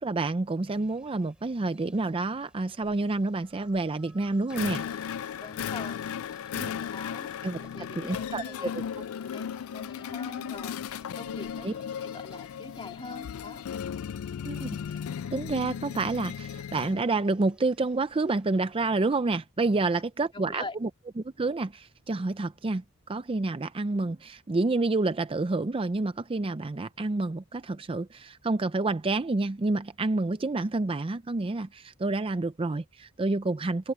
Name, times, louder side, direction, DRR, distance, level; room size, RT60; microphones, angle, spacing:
voice 1, 0.0-5.2 6.6-6.7 7.4-7.6 7.9-8.8 11.6-11.7 14.4-14.8 15.3-20.9 21.2-33.9, right 3 dB, 25° right, 0.5 m, -29 dB
sound 1, 0.6-18.8, right 1 dB, 5° right, 4.5 m, -61 dB
sound 2, 4.5-17.0, left 8 dB, 85° left, 0.3 m, -36 dB
voice 2, 5.4-6.1 6.9-11.7 12.0-13.6 20.3-20.8, left 2 dB, 25° left, 3.4 m, -44 dB
open air
head